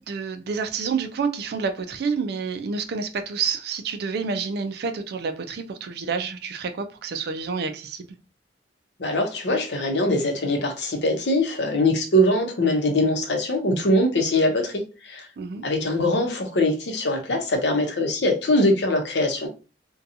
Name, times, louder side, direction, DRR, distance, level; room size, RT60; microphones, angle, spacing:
voice 1, 0.0-8.1 15.4-15.6, right 5 dB, 65° right, 0.4 m, -28 dB
voice 2, 9.0-15.3 15.6-19.5, left 1 dB, 75° left, 0.7 m, -22 dB
2.7 x 2.2 x 2.5 m
head